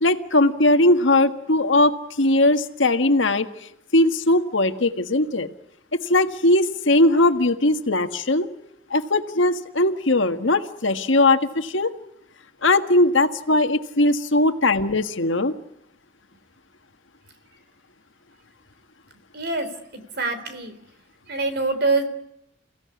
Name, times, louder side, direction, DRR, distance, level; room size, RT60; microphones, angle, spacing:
voice 1, 0.0-1.9 2.2-3.5 3.9-5.5 5.9-8.5 8.9-11.9 12.6-15.5, left 2 dB, 75° left, 8 dB, 1.6 m, -19 dB
voice 2, 19.3-19.7 19.9-20.7 21.3-22.0, right 3 dB, 55° right, 9 dB, 3.7 m, -24 dB
29.5 x 17.0 x 9.7 m, 0.84 s
head